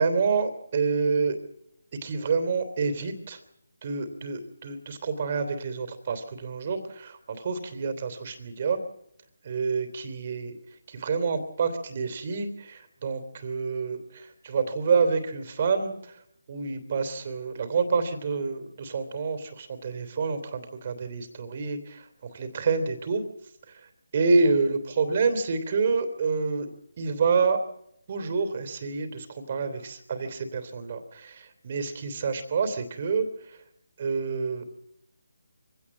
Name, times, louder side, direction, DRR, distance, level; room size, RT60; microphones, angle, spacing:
voice 1, 0.0-1.4 2.0-3.4 3.8-8.8 9.4-10.5 10.9-16.2 16.5-23.2 23.7-26.7 27.0-27.6 28.1-33.6 34.0-34.7, right 4 dB, 40° right, 9 dB, 3.3 m, -28 dB
24.0 x 17.0 x 7.5 m, 0.74 s
figure-of-eight pair, 160°, 0 cm